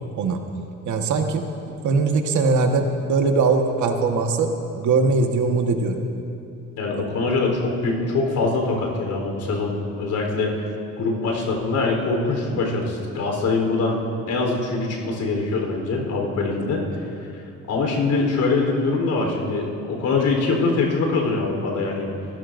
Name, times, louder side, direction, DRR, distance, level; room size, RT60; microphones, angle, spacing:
voice 1, 0.8-1.4 1.8-6.0 12.7-12.8, right 4 dB, 75° right, 4 dB, 1.5 m, -21 dB
voice 2, 6.8-10.7 11.0-14.0 14.3-17.0 17.3-17.4 17.7-22.1, left 3 dB, 80° left, 0 dB, 3.8 m, -23 dB
28.5 x 15.0 x 2.6 m, 2.8 s
cardioid pair, 90°, 30 cm